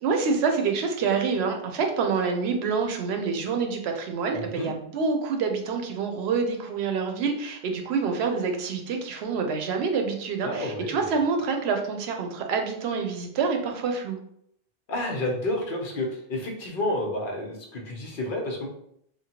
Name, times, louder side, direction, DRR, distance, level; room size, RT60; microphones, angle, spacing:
voice 1, 0.0-14.2, right 5 dB, 90° right, 4 dB, 0.8 m, -27 dB
voice 2, 4.3-4.7 10.4-11.1 14.9-18.7, left 1 dB, 60° left, 0 dB, 0.8 m, -30 dB
2.9 x 2.2 x 2.8 m, 0.71 s
omnidirectional pair, 1.0 m